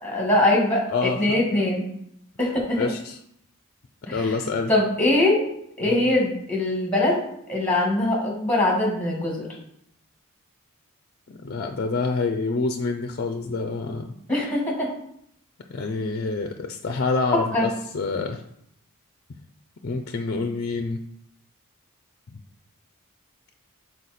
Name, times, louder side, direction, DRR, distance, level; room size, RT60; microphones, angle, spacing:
voice 1, 0.0-1.9 2.4-2.9 4.1-4.4 4.7-5.5 5.8-7.2 7.5-9.5 14.3-14.9 17.3-17.7, left 1 dB, 5° left, -2 dB, 1.8 m, -22 dB
voice 2, 2.8-3.1 4.1-4.7 5.8-6.0 11.3-14.1 15.7-18.4 19.8-21.0, left 3 dB, 45° left, 6 dB, 0.5 m, -27 dB
6.6 x 4.2 x 4.2 m, 0.72 s
head